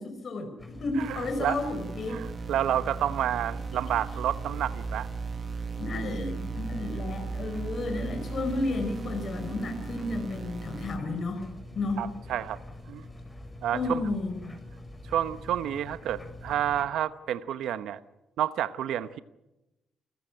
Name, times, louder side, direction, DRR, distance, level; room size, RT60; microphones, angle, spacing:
voice 1, 0.0-2.2 5.8-11.4 11.7-12.0 13.7-14.5, left 2 dB, 50° left, 5 dB, 4.9 m, -32 dB
sound 1, 0.6-16.9, left 1 dB, 15° left, 6.5 m, -45 dB
sound 2, 1.0-11.0, right 5 dB, 40° right, 1.4 m, -37 dB
voice 2, 1.0-1.6 2.1-5.1 5.9-6.1 12.0-12.6 12.9-13.0 13.6-14.0 15.0-18.0 18.4-19.2, right 11 dB, 80° right, 12 dB, 1.0 m, -30 dB
28.0 x 15.5 x 9.9 m, 0.97 s
cardioid pair, 90°, 0 cm